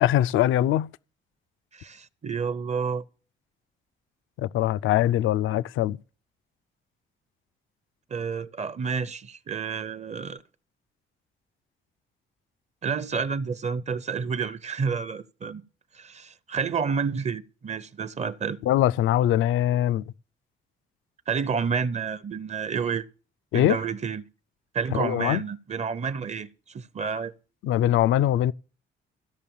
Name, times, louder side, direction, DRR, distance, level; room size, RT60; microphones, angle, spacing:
voice 1, 0.0-0.9 4.4-6.0 18.6-20.0 23.5-23.8 24.9-25.4 27.6-28.5, left 12 dB, 80° left, 0.4 m, -22 dB
voice 2, 1.7-3.0 8.1-10.4 12.8-15.6 15.9-18.6 21.3-23.0 23.5-24.2 24.7-27.3, right 6 dB, 35° right, 0.6 m, -29 dB
14.0 x 5.6 x 7.0 m
cardioid pair, 90°, 20 cm